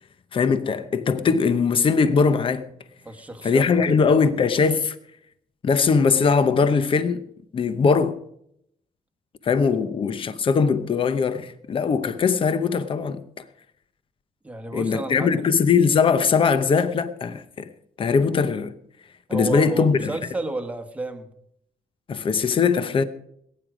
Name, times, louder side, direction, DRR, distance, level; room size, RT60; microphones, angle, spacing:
voice 1, 0.3-2.7 3.4-5.0 5.6-7.2 7.5-8.2 9.4-13.2 14.7-17.7 18.0-18.7 19.3-20.1 22.1-23.0, left 5 dB, 35° left, 0.9 m, -21 dB
voice 2, 3.0-4.1 14.4-15.3 19.3-21.3, right 2 dB, 10° right, 1.3 m, -31 dB
20.0 x 9.4 x 5.0 m
cardioid pair, 155°, 15 cm